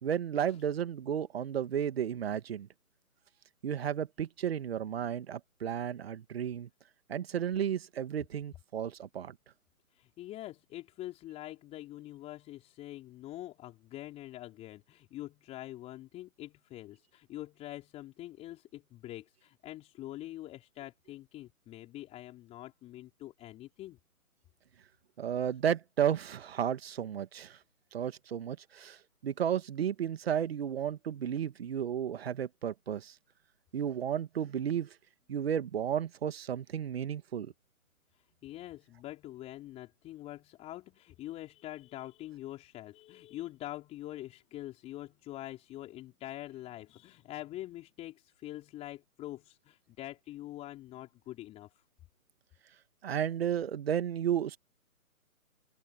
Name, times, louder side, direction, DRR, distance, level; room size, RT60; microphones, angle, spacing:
voice 1, 0.0-2.7 3.6-6.7 7.1-9.3 25.2-27.6 27.9-33.1 33.7-34.9 35.3-37.5 53.0-54.6, right 9 dB, 45° right, 2.0 m, -33 dB
voice 2, 9.9-24.0 38.4-51.8, left 15 dB, 15° left, 4.1 m, -45 dB
open air
figure-of-eight pair, 145°, 44 cm